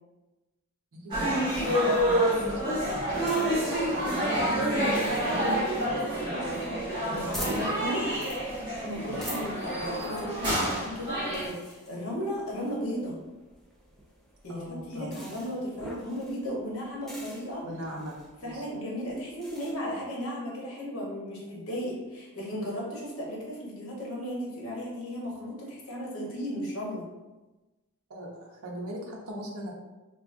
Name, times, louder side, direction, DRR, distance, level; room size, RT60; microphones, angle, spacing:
voice 1, 0.9-4.9 5.3-7.7 7.9-8.0 8.9-9.1 14.5-15.1 17.6-18.7 28.1-28.3 28.6-29.7, equal, 80° right, -2 dB, 0.7 m, -39 dB
sound 1, 1.1-11.5, right 1 dB, 20° right, 1.1 m, -28 dB
sound 2, 2.8-19.7, equal, ahead, 0.4 m, -46 dB
voice 2, 7.1-8.1 8.8-13.2 14.4-17.7 18.4-27.1, equal, 75° left, -3 dB, 0.9 m, -35 dB
3.8 x 2.3 x 2.5 m, 1.1 s
head